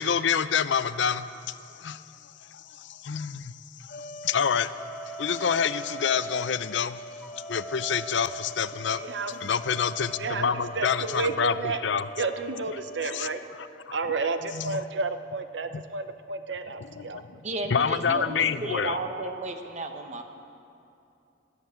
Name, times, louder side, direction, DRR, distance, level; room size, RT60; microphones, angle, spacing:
voice 1, 0.0-4.7 5.2-7.0 7.5-9.0 9.4-11.5 11.8-12.0 13.1-13.3 13.6-14.0 14.5-14.8 15.7-15.8 17.0-17.1 17.7-19.0, left 7 dB, 75° left, 14 dB, 0.5 m, -27 dB
sound 1, 3.9-13.5, equal, 45° left, 0.9 m, -44 dB
sound 2, 4.8-6.5 7.2-11.7, right 2 dB, 10° right, 0.4 m, -43 dB
voice 2, 8.7-9.5 10.2-11.8 12.2-13.4 13.9-17.2 18.1-18.4, right 4 dB, 70° right, 9 dB, 0.8 m, -31 dB
voice 3, 17.4-20.2, right 2 dB, 40° right, 5 dB, 1.1 m, -33 dB
13.5 x 11.5 x 8.4 m, 2.6 s
head